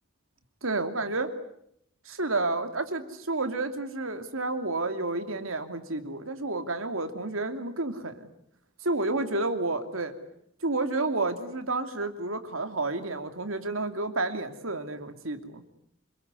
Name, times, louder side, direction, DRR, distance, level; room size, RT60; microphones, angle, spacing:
voice 1, 0.6-1.3 2.1-8.3 8.8-10.1 10.6-15.6, right 2 dB, 80° right, 7 dB, 2.8 m, -30 dB
27.5 x 21.0 x 9.6 m, 0.73 s
head